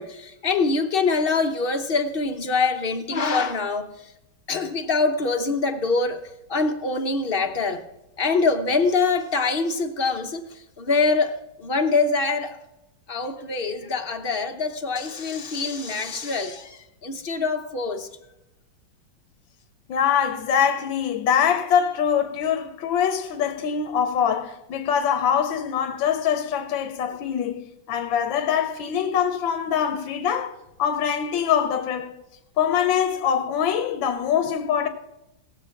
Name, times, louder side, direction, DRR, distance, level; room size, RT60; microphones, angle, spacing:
voice 1, 0.0-3.9 4.5-6.2 6.5-7.8 8.2-12.6 13.1-18.1, left 4 dB, 45° left, 0.7 m, -24 dB
voice 2, 19.9-32.1 32.6-34.9, left 8 dB, 80° left, 1.6 m, -23 dB
18.5 x 7.0 x 5.8 m
omnidirectional pair, 2.0 m